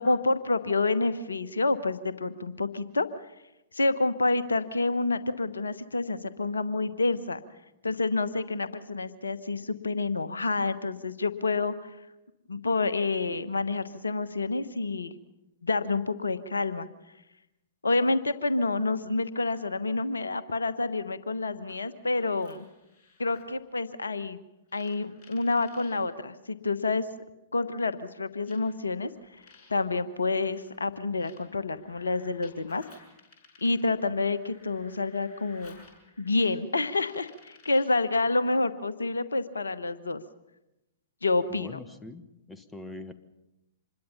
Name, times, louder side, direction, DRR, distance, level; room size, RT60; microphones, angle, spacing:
voice 1, 0.0-3.1 3.7-7.4 7.8-11.9 12.5-15.2 15.6-16.9 17.8-22.6 23.2-24.4 24.7-27.1 27.5-29.1 29.7-32.8 33.6-35.8 36.2-40.2 41.2-41.8, left 3 dB, 75° left, 13 dB, 1.1 m, -28 dB
sound 1, 21.5-23.6 24.7-26.0 27.1-27.2 28.5-38.0, left 4 dB, 30° left, 6.5 m, -58 dB
voice 2, 41.5-43.1, left 2 dB, 10° left, 11 dB, 1.3 m, -43 dB
26.0 x 21.5 x 5.7 m, 0.95 s
figure-of-eight pair, 110°, 0 cm